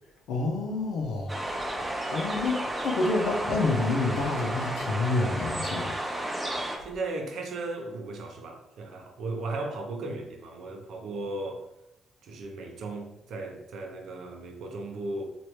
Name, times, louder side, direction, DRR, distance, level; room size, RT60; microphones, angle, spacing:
voice 1, 0.3-1.4 2.1-6.0, left 3 dB, 85° left, 0.6 m, -28 dB
sound 1, 1.3-6.8, right 1 dB, 10° right, 0.6 m, -32 dB
voice 2, 6.8-11.7 12.2-15.2, right 2 dB, 70° right, 0.6 m, -36 dB
3.1 x 2.5 x 2.9 m
cardioid pair, 90°, 0 cm